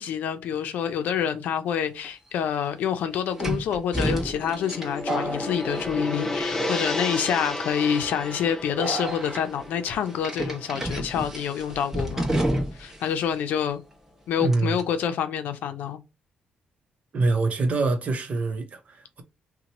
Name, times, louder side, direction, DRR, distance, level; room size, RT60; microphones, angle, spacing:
voice 1, 0.0-12.3 12.7-13.8 14.3-16.0, left 8 dB, 85° left, 0.5 m, -27 dB
sound 1, 2.0-2.1 3.4-6.4 6.7-7.2 7.8-8.1 8.8-9.4 10.2-13.0 13.2-13.3 14.5-14.8, right 1 dB, 10° right, 1.0 m, -30 dB
Gong, 4.0-12.4, left 1 dB, 15° left, 0.7 m, -33 dB
voice 2, 14.4-14.8 17.1-19.2, right 3 dB, 50° right, 0.8 m, -25 dB
2.9 x 2.2 x 4.0 m
cardioid pair, 95°, 3 cm